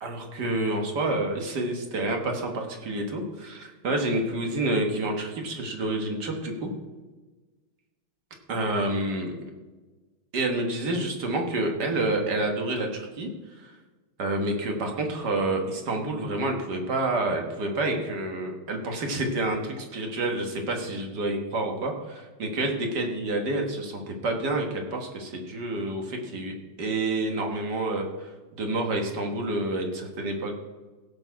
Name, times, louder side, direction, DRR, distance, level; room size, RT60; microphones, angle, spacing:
voice 1, 0.0-6.7 8.5-9.4 10.3-13.3 13.6-13.7 14.2-30.5, right 2 dB, 55° right, 2 dB, 1.9 m, -28 dB
16.0 x 6.1 x 4.7 m, 1.3 s
omnidirectional pair, 2.3 m